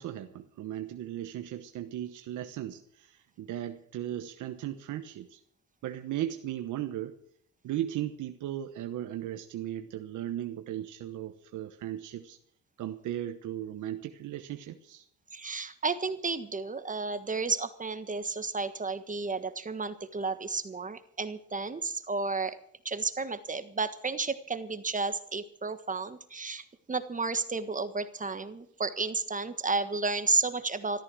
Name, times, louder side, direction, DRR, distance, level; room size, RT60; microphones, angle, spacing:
voice 1, 0.0-5.4 5.8-7.2 7.6-12.4 12.8-15.0, right 12 dB, 80° right, 7 dB, 1.2 m, -37 dB
voice 2, 15.3-22.6 22.8-31.0, right 4 dB, 25° right, 11 dB, 1.4 m, -32 dB
14.0 x 13.5 x 6.3 m, 0.65 s
cardioid pair, 90°, 30 cm